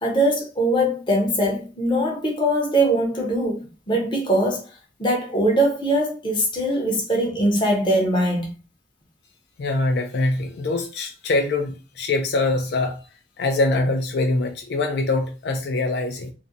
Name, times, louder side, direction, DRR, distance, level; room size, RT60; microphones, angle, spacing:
voice 1, 0.0-8.5, right 1 dB, 25° left, 0.6 m, -22 dB
voice 2, 9.6-13.0 13.4-16.3, left 2 dB, 70° left, 0.4 m, -23 dB
2.4 x 2.0 x 2.6 m
head